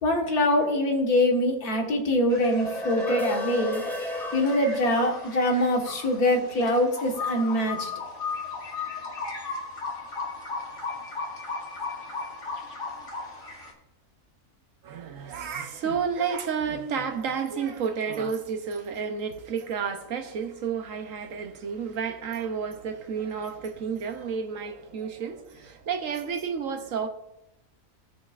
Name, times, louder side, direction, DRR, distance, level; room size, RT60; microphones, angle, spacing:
voice 1, 0.0-3.8 4.3-7.9, left 1 dB, 85° left, 2.0 m, -24 dB
sound 1, 2.3-13.7, left 4 dB, 55° left, 2.2 m, -36 dB
sound 2, 2.3-6.9, left 1 dB, ahead, 0.5 m, -34 dB
voice 2, 14.8-27.1, right 6 dB, 65° right, 1.1 m, -31 dB
17.0 x 6.2 x 2.4 m
omnidirectional pair, 1.6 m